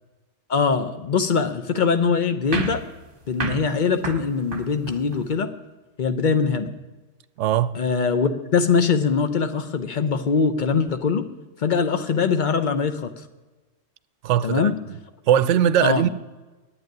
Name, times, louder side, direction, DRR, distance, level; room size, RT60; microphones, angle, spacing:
voice 1, 0.5-2.8 3.3-5.5 6.0-6.7 7.7-11.3 11.6-13.1 14.4-14.8 15.8-16.1, left 5 dB, 45° left, 0.9 m, -22 dB
sound 1, 2.5-5.4, right 5 dB, 45° right, 1.2 m, -32 dB
voice 2, 7.4-7.8 14.2-15.0 15.3-16.1, right 10 dB, 75° right, 0.9 m, -20 dB
9.3 x 8.9 x 9.4 m
omnidirectional pair, 1.3 m